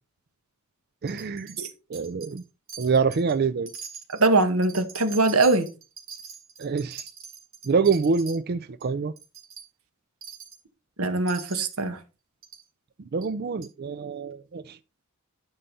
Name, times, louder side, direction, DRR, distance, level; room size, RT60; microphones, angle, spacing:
voice 1, 1.0-1.6 1.9-2.4 2.8-3.7 6.6-7.1 7.7-9.1 13.1-14.8, right 5 dB, 45° right, 0.4 m, -26 dB
Wind chime, 1.1-1.6 1.9-2.4 2.7-3.3 3.7-8.4 8.8-8.9 9.2-9.6 10.2-10.6 11.3-11.7 12.4-12.6 13.2-13.3 13.6-13.7, right 7 dB, 65° right, 4.2 m, -43 dB
voice 2, 4.2-5.7 11.0-12.0, right 3 dB, 90° right, 1.7 m, -22 dB
11.0 x 5.6 x 4.1 m
head